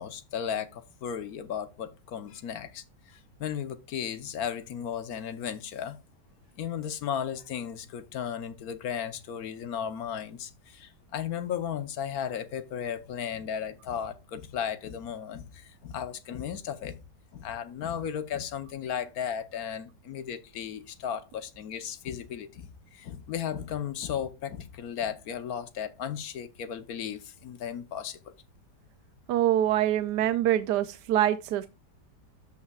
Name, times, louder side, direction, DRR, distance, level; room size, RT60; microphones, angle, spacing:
voice 1, 0.0-6.0 6.6-17.0 17.3-28.3, left 8 dB, 65° left, 1.3 m, -35 dB
voice 2, 29.3-31.7, right 12 dB, 80° right, 1.2 m, -25 dB
13.5 x 5.6 x 2.3 m
omnidirectional pair, 1.8 m